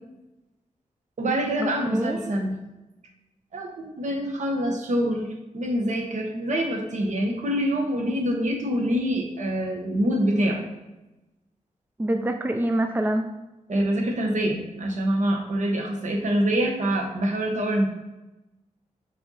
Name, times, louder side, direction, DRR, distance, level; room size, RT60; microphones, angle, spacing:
voice 1, 1.2-2.6 3.5-10.6 13.7-17.9, equal, 65° right, 2 dB, 1.2 m, -25 dB
voice 2, 1.9-2.2 12.0-13.2, right 1 dB, 15° right, 5 dB, 0.4 m, -25 dB
5.6 x 4.3 x 4.0 m, 1.0 s
wide cardioid pair, 90°, 13 cm